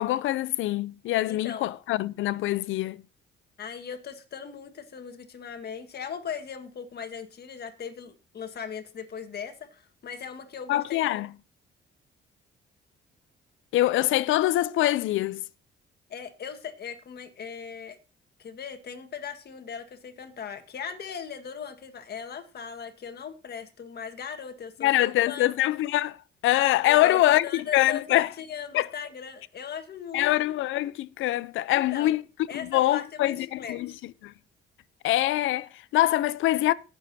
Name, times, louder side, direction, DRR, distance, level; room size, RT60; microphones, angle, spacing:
voice 1, 0.0-3.0 10.7-11.3 13.7-15.4 24.8-28.3 28.7-28.9 30.1-32.2 32.5-33.9 34.2-34.3 35.0-36.7, left 15 dB, 85° left, 0.6 m, -24 dB
voice 2, 1.3-1.7 3.6-11.2 16.1-18.0 18.4-25.5 26.8-30.5 31.7-32.2 32.5-34.0, left 7 dB, 55° left, 1.6 m, -39 dB
18.5 x 7.2 x 2.8 m
cardioid pair, 90°, 20 cm